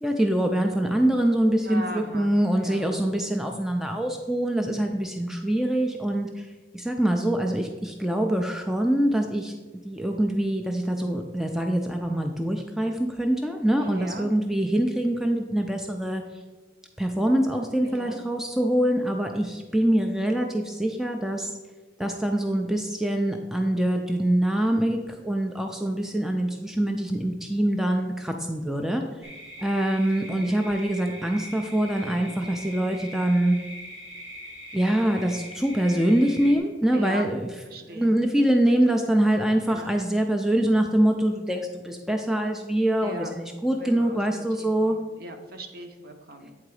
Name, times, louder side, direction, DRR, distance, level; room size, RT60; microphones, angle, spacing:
voice 1, 0.0-6.5 6.7-9.5 9.8-16.2 17.0-21.5 22.0-29.3 29.6-33.6 34.7-37.5 37.9-45.0, right 1 dB, ahead, 3 dB, 0.4 m, -24 dB
voice 2, 1.6-2.3 2.6-2.9 13.8-14.3 17.8-18.2 36.9-37.3 37.7-38.2 39.7-40.0 43.0-43.3 43.8-46.5, right 1 dB, 50° right, 5 dB, 0.8 m, -38 dB
sound 1, 29.2-36.6, equal, 75° right, 1.6 m, -42 dB
8.5 x 3.8 x 4.7 m, 1.3 s
head